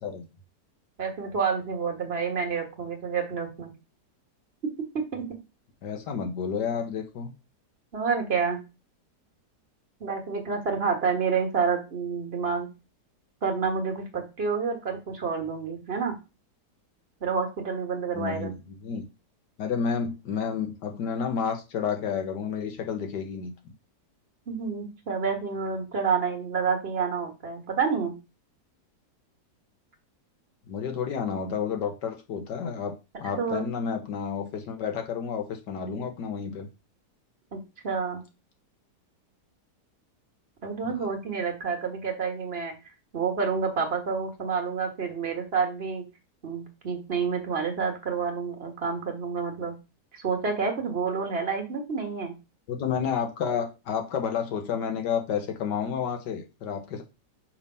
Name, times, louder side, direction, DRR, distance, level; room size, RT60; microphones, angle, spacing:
voice 1, 1.0-3.7 4.9-5.2 7.9-8.6 10.0-12.7 13.4-16.1 17.2-18.5 24.5-28.1 33.2-33.6 37.5-38.2 40.6-42.7 43.1-46.0 46.4-49.7 50.1-52.3, right 5 dB, 40° right, 3 dB, 1.5 m, -29 dB
voice 2, 5.8-7.3 18.1-18.5 18.8-19.1 19.6-23.5 30.7-36.7 40.9-41.1 52.7-57.0, left 6 dB, 80° left, 5 dB, 1.7 m, -30 dB
5.6 x 3.5 x 5.5 m, 0.27 s
omnidirectional pair, 1.8 m